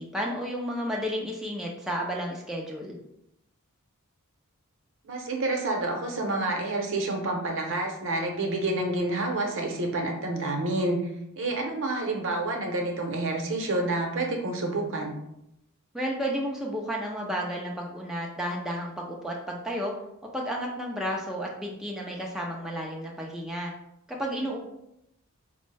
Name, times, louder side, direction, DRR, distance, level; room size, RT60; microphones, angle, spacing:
voice 1, 0.0-3.0 15.9-19.9 20.3-23.7 24.1-24.6, equal, ahead, -2 dB, 0.4 m, -32 dB
voice 2, 5.0-11.0 11.4-15.2, right 2 dB, 60° right, 1 dB, 0.7 m, -28 dB
4.3 x 2.0 x 3.2 m, 0.81 s
head